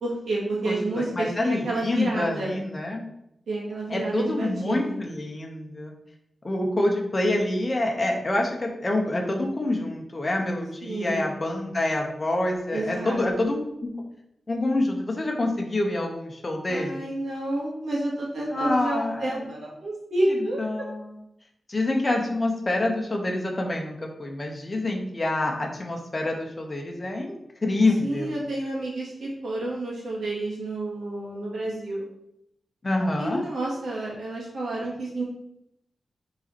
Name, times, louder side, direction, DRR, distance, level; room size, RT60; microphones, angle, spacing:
voice 1, 0.0-2.5 3.5-5.0 10.8-11.2 12.7-13.2 16.7-20.6 28.0-32.0 33.2-35.2, right 2 dB, 75° right, -5 dB, 2.1 m, -29 dB
voice 2, 0.6-3.0 3.9-5.9 6.4-13.9 14.5-17.0 18.5-19.5 20.3-21.1 21.7-27.4 27.6-28.4 32.8-33.4, left 2 dB, 25° left, 1 dB, 0.9 m, -27 dB
5.5 x 4.1 x 4.3 m, 0.80 s
wide cardioid pair, 180°, 0 cm